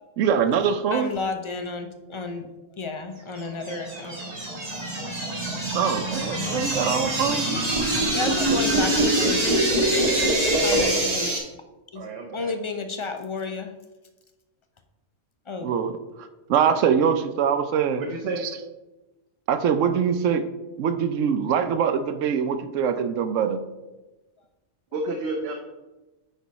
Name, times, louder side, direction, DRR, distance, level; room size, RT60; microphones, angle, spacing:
voice 1, 0.2-1.1 5.7-7.5 15.6-16.0 16.5-18.0 18.4-18.6 19.5-20.4 20.8-23.6, right 7 dB, 90° right, 9 dB, 1.0 m, -23 dB
voice 2, 0.9-2.5 2.8-4.2 8.1-9.5 10.6-11.3 11.9-12.0 12.3-13.7 15.5-15.7, left 4 dB, 35° left, 6 dB, 0.5 m, -31 dB
sound 1, 3.4-11.4, right 1 dB, 35° right, 1.5 m, -24 dB
voice 3, 11.9-12.5 18.0-18.5 24.9-25.6, right 2 dB, 60° right, 2 dB, 0.9 m, -30 dB
9.2 x 4.5 x 4.0 m, 1.1 s
omnidirectional pair, 1.3 m